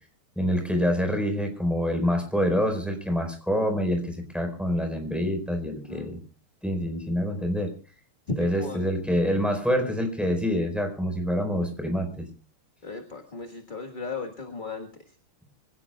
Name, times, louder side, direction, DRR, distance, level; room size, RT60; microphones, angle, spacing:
voice 1, 0.4-6.2 6.6-7.7 8.4-12.3, equal, ahead, 4 dB, 4.4 m, -26 dB
voice 2, 8.3-8.9 12.8-15.2, left 3 dB, 25° left, 4 dB, 1.6 m, -36 dB
25.5 x 17.5 x 2.3 m, 0.35 s
omnidirectional pair, 2.4 m